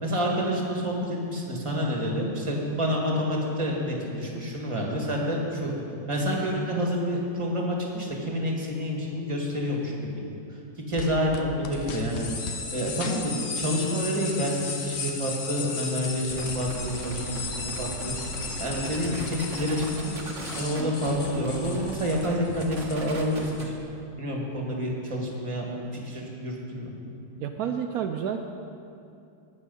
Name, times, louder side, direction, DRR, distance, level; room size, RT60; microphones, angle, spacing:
voice 1, 0.0-5.7 6.1-10.2 10.9-12.3 12.7-18.1 18.6-20.1 20.6-23.7 24.2-25.7 25.9-26.9, equal, 15° right, -1 dB, 1.8 m, -28 dB
sound 1, 11.0-12.6 13.0-14.1 14.4-16.5 16.9-17.0 17.3-19.7, left 5 dB, 80° left, 0.6 m, -41 dB
sound 2, 11.7-23.7, left 5 dB, 50° left, 1.3 m, -36 dB
sound 3, 16.3-23.8, right 3 dB, 40° right, 1.4 m, -39 dB
voice 2, 27.4-28.4, right 8 dB, 80° right, 6 dB, 0.8 m, -29 dB
19.5 x 6.7 x 5.5 m, 2.6 s
omnidirectional pair, 2.2 m